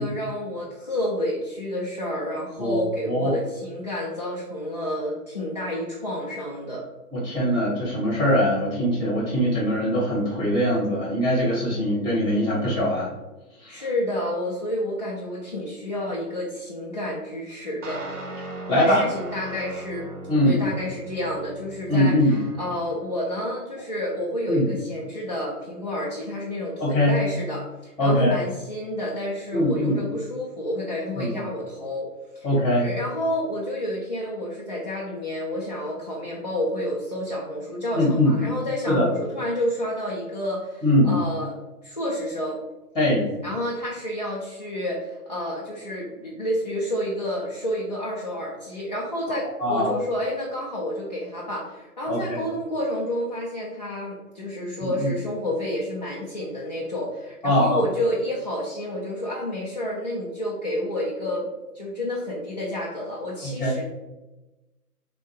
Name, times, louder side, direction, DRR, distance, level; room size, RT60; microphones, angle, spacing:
voice 1, 0.0-6.9 13.7-18.0 18.7-20.1 20.4-22.3 22.6-32.1 32.3-32.5 32.7-41.6 41.8-42.6 43.4-63.9, left 1 dB, 30° left, -6 dB, 0.4 m, -29 dB
voice 2, 2.6-3.3 7.1-13.1 13.6-13.8 18.7-19.1 20.3-20.6 21.9-22.4 24.5-24.7 26.8-27.2 28.0-28.3 29.5-30.0 31.2-31.3 32.4-32.9 37.9-38.3 38.9-39.1 40.8-41.1 42.9-43.3 49.6-49.9 52.1-52.4 54.8-55.1 57.4-57.8 63.4-63.8, equal, 10° left, -6 dB, 1.4 m, -22 dB
sound 1, 17.8-23.0, right 1 dB, 55° right, 1.0 m, -38 dB
6.3 x 2.2 x 3.1 m, 1.1 s
figure-of-eight pair, 140°, 47 cm